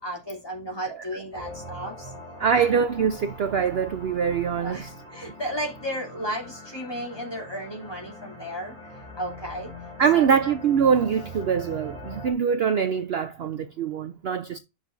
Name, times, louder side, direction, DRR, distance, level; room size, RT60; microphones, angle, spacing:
voice 1, 0.0-2.1 4.6-8.7 9.2-9.7 10.1-10.4, equal, 15° left, 3.1 m, -34 dB
sound 1, 1.3-12.3, equal, 25° right, 4.4 m, -42 dB
voice 2, 2.4-4.9 10.0-14.6, right 7 dB, 55° right, 0.8 m, -23 dB
10.5 x 6.5 x 2.6 m
omnidirectional pair, 1.4 m